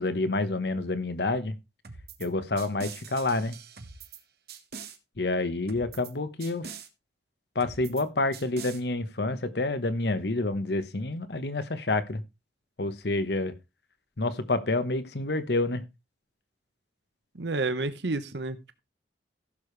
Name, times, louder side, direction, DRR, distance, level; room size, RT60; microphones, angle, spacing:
voice 1, 0.0-1.6 2.2-3.5 5.2-6.7 7.5-12.2 12.8-13.5 14.2-15.8, left 2 dB, 70° left, 1.0 m, -28 dB
sound 1, 1.8-2.3 2.6-4.2 4.5-5.0 5.7-6.1 6.4-6.9 7.6-8.0 8.3-8.8, right 5 dB, 60° right, 1.5 m, -43 dB
voice 2, 17.3-18.8, right 3 dB, 80° right, 0.9 m, -30 dB
15.5 x 6.8 x 3.3 m
head